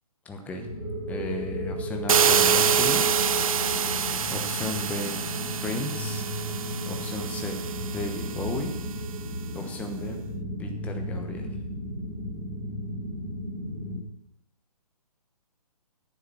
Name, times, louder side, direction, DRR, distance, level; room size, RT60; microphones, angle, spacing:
voice 1, 0.2-0.7 1.1-3.0 4.3-5.2 5.6-6.2 6.9-7.6 7.9-8.7 9.5-10.2 10.6-11.5, left 2 dB, 5° left, 3 dB, 1.0 m, -34 dB
sound 1, 0.6-14.0, equal, 25° right, 2.6 m, -34 dB
sound 2, 2.1-8.9, right 7 dB, 60° right, 0.6 m, -26 dB
9.8 x 7.2 x 6.2 m, 0.81 s
figure-of-eight pair, 140°, 20 cm